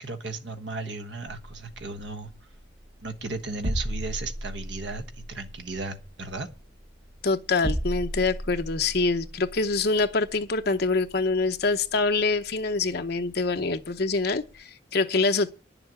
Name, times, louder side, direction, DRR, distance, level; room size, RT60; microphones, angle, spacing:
voice 1, 0.0-2.3 3.0-6.5, right 3 dB, 70° right, 1.3 m, -35 dB
sound 1, 2.3-14.6, equal, 35° right, 1.2 m, -37 dB
voice 2, 7.2-15.5, left 3 dB, 60° left, 0.8 m, -25 dB
11.0 x 6.9 x 8.2 m
head